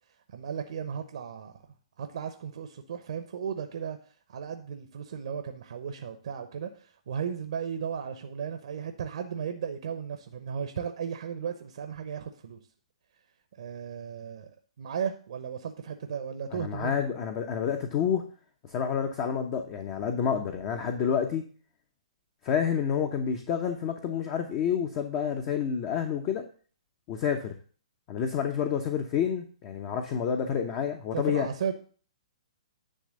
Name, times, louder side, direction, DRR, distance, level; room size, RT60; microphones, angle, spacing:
voice 1, 0.3-1.5 2.0-4.0 4.3-12.6 13.6-14.5 14.8-17.0 31.1-31.7, right 7 dB, 60° right, 7 dB, 0.9 m, -35 dB
voice 2, 16.5-18.3 18.7-21.5 22.4-26.4 27.1-27.5 28.1-31.5, left 7 dB, 35° left, 5 dB, 0.9 m, -29 dB
10.0 x 3.4 x 6.4 m, 0.42 s
hypercardioid pair, 125°, 4 cm